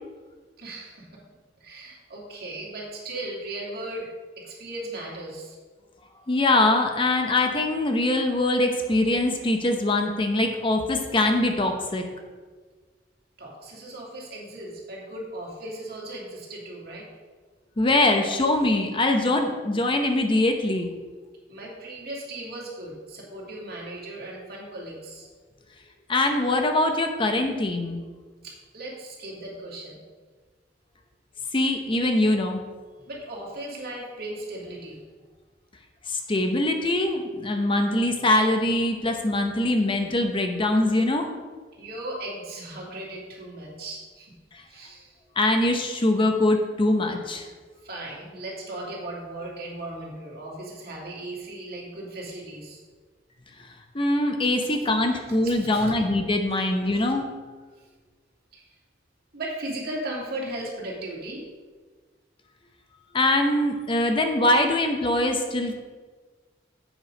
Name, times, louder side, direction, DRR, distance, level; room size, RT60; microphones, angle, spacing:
voice 1, 0.6-1.2 1.6-4.1 4.4-5.6 13.4-17.1 21.5-25.3 28.4-30.0 33.1-35.0 41.8-44.3 44.7-45.2 47.8-52.8 55.4-55.9 56.5-57.1 58.5-58.7 59.3-61.4, right 1 dB, 55° right, -3 dB, 2.4 m, -37 dB
voice 2, 6.3-12.0 17.8-20.9 26.1-28.0 31.5-32.6 36.1-41.4 44.5-44.6 45.4-47.5 53.9-57.3 63.1-65.7, left 2 dB, 30° left, 4 dB, 0.7 m, -23 dB
8.0 x 6.1 x 5.1 m, 1.4 s
head